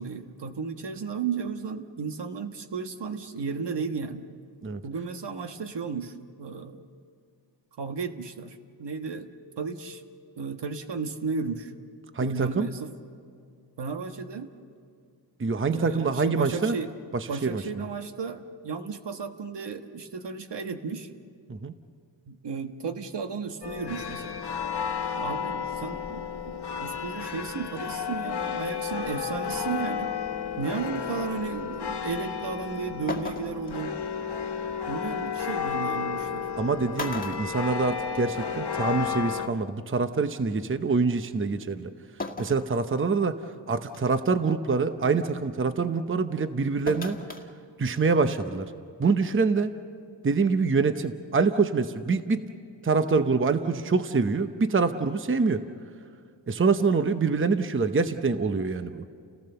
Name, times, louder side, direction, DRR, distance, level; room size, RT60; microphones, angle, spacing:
voice 1, 0.0-4.3 4.8-6.9 7.8-9.3 9.6-10.0 10.4-11.7 12.2-12.9 13.8-14.5 15.7-16.9 17.3-21.1 22.3-24.4 25.1-26.4 26.8-30.2 30.6-33.9 34.9-36.5, right 5 dB, 65° right, 7 dB, 1.4 m, -34 dB
voice 2, 12.1-12.7 15.4-16.8 17.1-17.6 21.5-21.7 36.6-41.9 42.4-43.4 43.7-47.2 47.8-48.7 49.0-49.7 50.2-52.4 52.8-55.6 56.5-59.0, right 4 dB, 25° right, 9 dB, 0.8 m, -25 dB
sound 1, 23.6-39.5, left 7 dB, 60° left, 1.5 m, -32 dB
sound 2, 32.5-32.6 33.1-33.7 35.3-35.4 36.4-36.6 36.9-38.3 38.7-38.8 40.0-40.1 42.2-42.7 43.2-43.3 43.9-44.2 46.9-47.5 47.8-47.9, left 2 dB, 20° left, 1.9 m, -36 dB
30.0 x 18.0 x 6.8 m, 2.3 s
wide cardioid pair, 90°, 46 cm